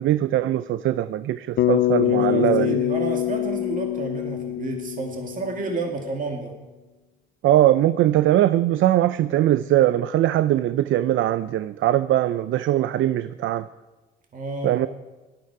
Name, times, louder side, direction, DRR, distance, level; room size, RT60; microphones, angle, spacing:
voice 1, 0.0-2.8 7.4-13.7 14.6-14.9, right 13 dB, 80° right, 14 dB, 0.5 m, -21 dB
Bass guitar, 1.6-5.9, left 14 dB, 65° left, 0.6 m, -24 dB
voice 2, 2.0-6.6 14.3-14.9, right 3 dB, 40° right, 2 dB, 2.3 m, -30 dB
18.0 x 12.5 x 4.8 m, 1.2 s
cardioid pair, 90°, 20 cm